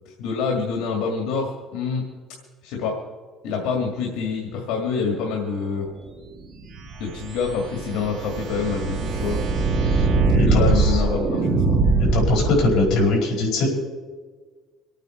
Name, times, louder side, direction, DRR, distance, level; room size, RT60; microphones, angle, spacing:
voice 1, 0.2-2.1 2.6-3.0 3.4-5.9 7.0-9.4 10.4-11.9, left 5 dB, 90° left, 1 dB, 2.2 m, -26 dB
sound 1, 6.7-13.0, right 3 dB, 35° right, 1.5 m, -22 dB
voice 2, 10.4-11.0 12.1-13.7, left 2 dB, 60° left, -2 dB, 4.9 m, -21 dB
26.0 x 9.0 x 4.5 m, 1.5 s
cardioid pair, 160°, 0 cm